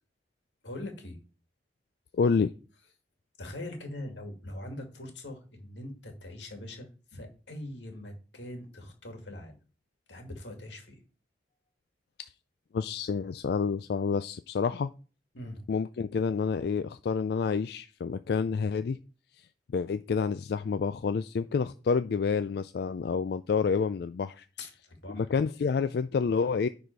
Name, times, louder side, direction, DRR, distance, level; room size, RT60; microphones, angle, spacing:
voice 1, 0.6-1.2 3.4-9.6 10.1-11.0 15.3-15.6 24.6-25.3, left 1 dB, 90° left, 4 dB, 2.3 m, -42 dB
voice 2, 2.1-2.5 12.7-14.9 15.7-19.0 19.7-24.5 25.1-26.7, left 5 dB, 60° left, 12 dB, 0.3 m, -28 dB
10.0 x 4.2 x 4.6 m, 0.36 s
head